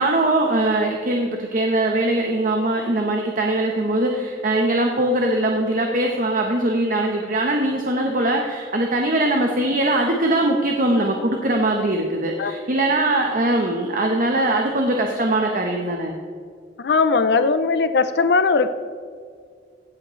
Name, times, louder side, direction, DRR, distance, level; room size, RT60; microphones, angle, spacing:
voice 1, 0.0-16.1, right 1 dB, 50° right, 2 dB, 1.0 m, -21 dB
voice 2, 16.8-18.7, left 4 dB, 65° left, 11 dB, 0.5 m, -19 dB
16.5 x 8.0 x 3.1 m, 2.1 s
head